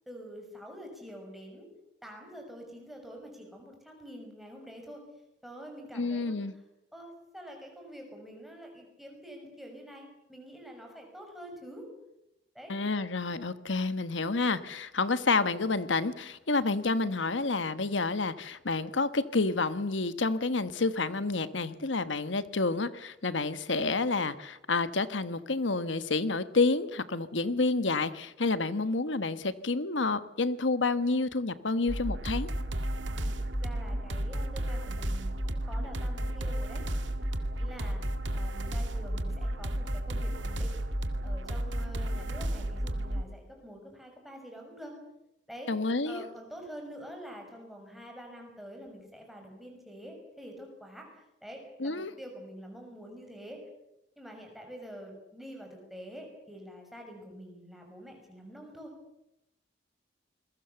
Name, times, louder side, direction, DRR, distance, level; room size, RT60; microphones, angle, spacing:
voice 1, 0.1-1.7 2.0-5.0 5.4-6.4 6.9-11.9 12.5-12.7 33.0-36.8 37.6-38.0 38.3-40.8 41.2-44.9 45.5-45.7 46.0-53.6 54.2-58.9, equal, ahead, 2 dB, 6.2 m, -46 dB
voice 2, 5.9-6.5 12.7-32.5 45.7-46.2 51.8-52.1, left 3 dB, 90° left, 13 dB, 1.3 m, -29 dB
sound 1, 31.9-43.2, right 1 dB, 85° right, 2.0 m, -32 dB
28.0 x 21.5 x 7.0 m, 0.89 s
head